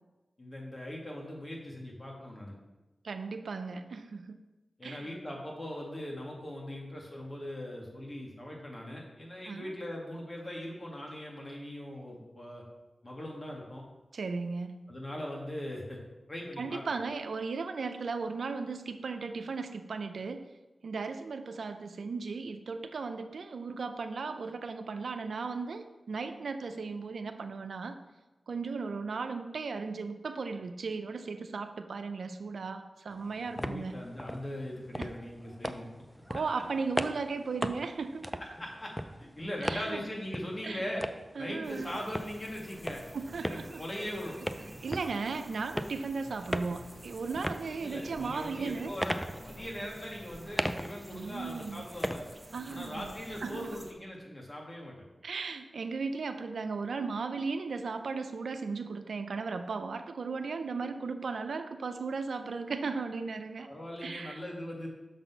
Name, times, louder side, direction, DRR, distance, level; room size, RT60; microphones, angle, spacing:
voice 1, 0.4-2.5 4.8-12.6 13.0-13.8 14.9-16.0 16.3-16.8 33.4-35.9 38.4-38.9 39.2-41.0 41.4-43.0 43.4-44.4 47.8-52.3 52.7-55.1 63.7-64.9, left 1 dB, 35° left, -2 dB, 2.2 m, -40 dB
voice 2, 3.0-4.4 4.8-5.1 9.5-9.7 14.1-14.8 16.6-20.5 20.8-28.0 28.5-33.9 35.0-35.1 36.3-38.4 39.6-40.0 40.6-40.8 41.4-42.0 43.1-43.8 44.6-48.9 51.1-51.8 52.5-53.1 53.4-53.8 55.2-63.7 64.0-64.4, right 4 dB, 85° right, 8 dB, 0.4 m, -36 dB
sound 1, 33.1-52.8, equal, ahead, 0.5 m, -40 dB
sound 2, 41.6-53.9, right 1 dB, 20° right, 1.1 m, -50 dB
6.8 x 4.2 x 5.7 m, 1.1 s
cardioid pair, 40°, 0 cm